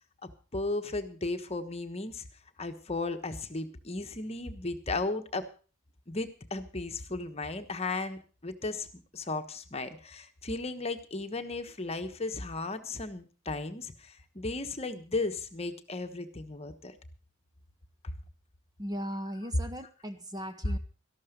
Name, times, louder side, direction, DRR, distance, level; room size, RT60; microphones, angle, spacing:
voice 1, 0.2-2.2 2.6-5.5 6.1-8.9 9.1-17.0, left 3 dB, 30° left, 8 dB, 1.2 m, -35 dB
voice 2, 18.8-20.8, equal, 20° right, 10 dB, 0.8 m, -38 dB
13.5 x 12.0 x 5.1 m, 0.37 s
head